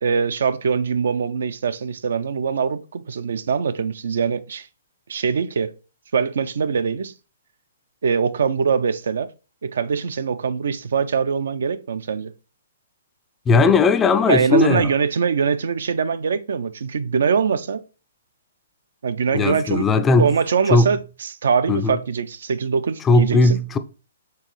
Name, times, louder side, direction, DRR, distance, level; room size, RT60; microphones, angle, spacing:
voice 1, 0.0-4.7 5.1-5.7 6.1-7.1 8.0-9.3 9.6-12.3 14.3-17.8 19.0-23.6, right 6 dB, 70° right, 0.4 m, -23 dB
voice 2, 13.5-14.9 19.3-20.3 20.7-20.9 21.7-22.0 23.0-23.8, left 3 dB, 15° left, 0.3 m, -17 dB
4.5 x 3.0 x 3.2 m
hypercardioid pair, 135°, 0 cm